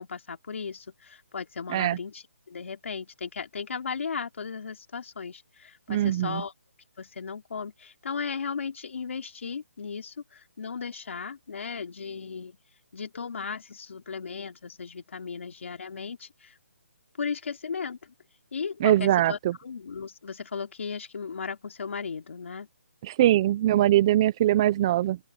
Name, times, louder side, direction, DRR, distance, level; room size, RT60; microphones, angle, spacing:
voice 1, 0.0-6.5 7.0-12.6 12.9-16.6 17.2-18.1 18.5-22.7, left 5 dB, 65° left, 3.4 m, -36 dB
voice 2, 5.9-6.4 18.8-19.5 23.0-25.2, right 13 dB, 20° right, 0.4 m, -22 dB
open air
hypercardioid pair, 170°, 8 cm